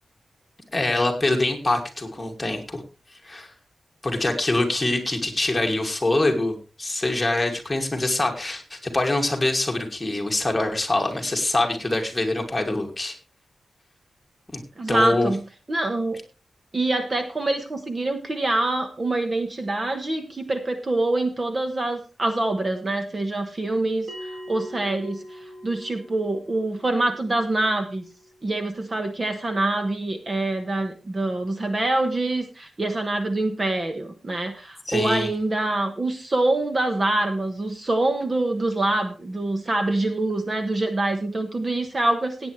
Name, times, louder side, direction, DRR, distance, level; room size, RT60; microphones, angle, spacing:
voice 1, 0.7-2.8 3.2-3.5 4.0-13.2 14.5-14.6 14.9-15.3 34.9-35.3, left 2 dB, 15° left, 2 dB, 2.4 m, -24 dB
voice 2, 14.8-16.2 16.7-28.0 28.4-42.5, right 2 dB, 30° right, 7 dB, 1.2 m, -25 dB
Bell, 24.1-29.1, equal, 60° right, 4.4 m, -43 dB
17.0 x 9.1 x 3.3 m, 0.31 s
wide cardioid pair, 145°, 0 cm